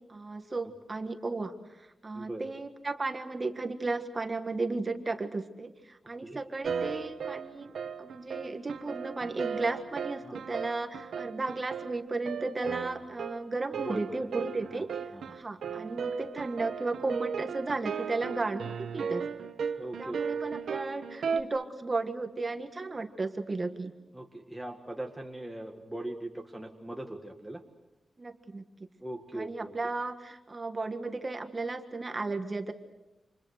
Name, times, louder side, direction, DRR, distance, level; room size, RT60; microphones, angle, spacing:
voice 1, 0.1-7.7 8.0-14.9 15.3-19.3 20.0-23.9 28.2-28.6 29.3-32.7, right 3 dB, 25° right, 7 dB, 1.5 m, -34 dB
sound 1, 6.6-21.4, right 6 dB, 85° right, 1.3 m, -36 dB
voice 2, 13.8-14.8 15.1-15.4 19.8-20.2 24.1-27.6 29.0-29.7, right 1 dB, 5° right, 2 dB, 1.8 m, -40 dB
29.5 x 27.5 x 6.6 m, 0.98 s
wide cardioid pair, 150°, 0 cm